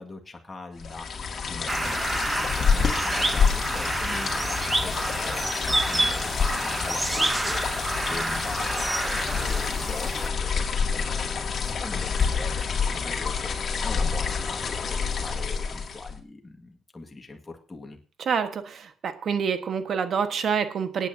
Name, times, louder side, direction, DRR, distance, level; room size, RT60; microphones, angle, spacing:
voice 1, 0.0-18.0, left 3 dB, 25° left, 2 dB, 2.0 m, -42 dB
sound 1, 0.8-16.2, left 5 dB, 55° left, 2.1 m, -28 dB
sound 2, 1.7-10.3, right 2 dB, 20° right, 0.9 m, -29 dB
voice 2, 18.2-21.1, right 6 dB, 65° right, 9 dB, 1.4 m, -27 dB
27.0 x 9.1 x 2.8 m, 0.33 s
cardioid pair, 70°, 0 cm